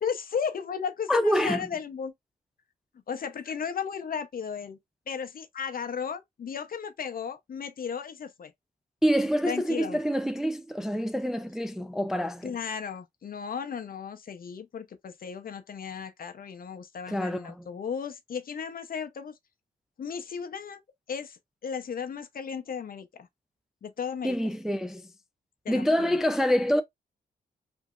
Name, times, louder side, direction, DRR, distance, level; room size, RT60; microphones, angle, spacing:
voice 1, 0.0-2.1 3.1-4.8 5.1-8.5 9.5-10.0 12.4-19.3 20.0-20.8 21.1-23.3 23.8-24.4 25.6-26.2, left 6 dB, 55° left, 0.6 m, -35 dB
voice 2, 1.1-1.6 9.0-12.6 17.1-17.7 24.2-25.1 25.7-26.8, equal, ahead, 0.3 m, -26 dB
2.9 x 2.7 x 2.3 m
cardioid pair, 65°, 18 cm